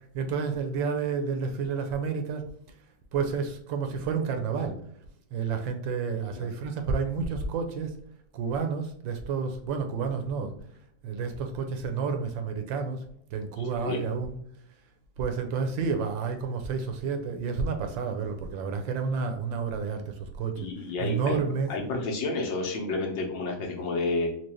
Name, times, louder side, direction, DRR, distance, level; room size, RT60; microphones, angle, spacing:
voice 1, 0.1-2.4 3.1-4.8 5.3-8.0 8.3-10.5 11.0-13.0 13.3-14.4 15.2-21.7, right 5 dB, 75° right, 6 dB, 1.3 m, -30 dB
voice 2, 13.6-14.0 20.6-21.4 21.7-24.3, left 3 dB, 70° left, 0 dB, 1.6 m, -30 dB
4.5 x 2.4 x 3.0 m, 0.69 s
omnidirectional pair, 2.2 m